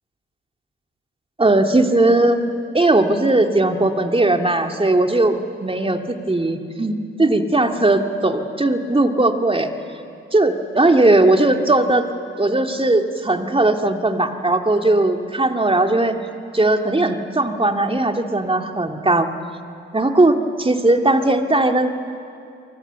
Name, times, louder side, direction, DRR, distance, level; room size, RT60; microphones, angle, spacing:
voice 1, 1.4-2.4 2.7-9.7 10.3-12.1 12.4-16.2 16.5-19.3 19.9-21.9, right 2 dB, 20° right, 5 dB, 2.4 m, -18 dB
29.0 x 24.0 x 7.1 m, 2.5 s
hypercardioid pair, 40°, 30 cm